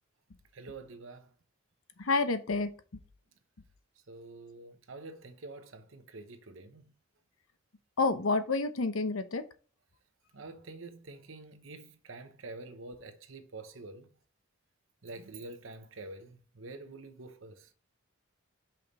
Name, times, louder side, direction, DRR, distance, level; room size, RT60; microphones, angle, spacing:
voice 1, 0.5-1.3 4.1-6.8 10.3-14.1 15.0-17.7, right 2 dB, 70° right, 0.9 m, -47 dB
voice 2, 2.0-2.7 8.0-9.4, left 3 dB, 85° left, 0.8 m, -29 dB
5.6 x 5.2 x 4.1 m
head